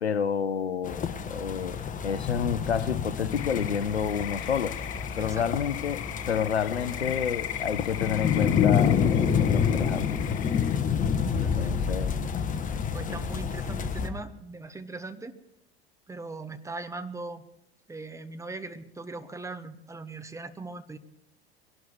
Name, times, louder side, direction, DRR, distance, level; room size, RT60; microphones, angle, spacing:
voice 1, 0.0-4.8 5.2-10.4 11.3-12.2 13.1-13.2, left 7 dB, 85° left, 0.7 m, -30 dB
sound 1, 0.8-14.1, left 7 dB, 25° left, 1.4 m, -28 dB
sound 2, 3.3-10.8, left 11 dB, 45° left, 1.4 m, -39 dB
voice 2, 11.4-11.9 12.9-15.4 16.1-17.4 17.9-21.0, right 3 dB, 10° right, 1.1 m, -39 dB
22.5 x 12.0 x 4.5 m
figure-of-eight pair, 80°, 32 cm